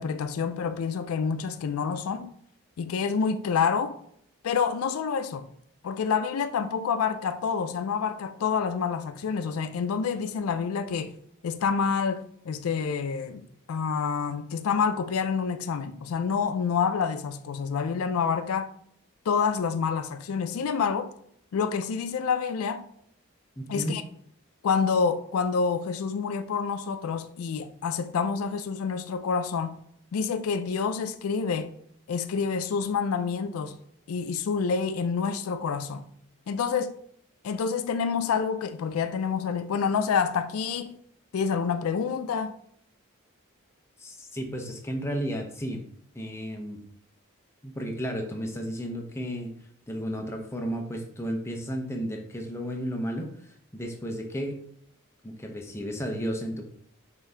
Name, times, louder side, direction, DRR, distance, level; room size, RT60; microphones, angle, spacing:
voice 1, 0.0-2.3 2.8-4.0 4.4-5.5 5.8-11.1 11.4-18.7 19.3-21.1 21.5-22.9 23.7-24.0 24.6-29.8 30.1-31.7 32.1-33.8 34.1-36.0 36.5-36.9 37.4-41.0 41.3-42.6, left 6 dB, 85° left, 0.4 m, -28 dB
voice 2, 23.6-24.0 44.0-45.8 46.1-46.8 47.6-49.5 49.9-54.7 55.2-56.7, equal, 10° left, 0.6 m, -33 dB
5.7 x 2.7 x 3.3 m
head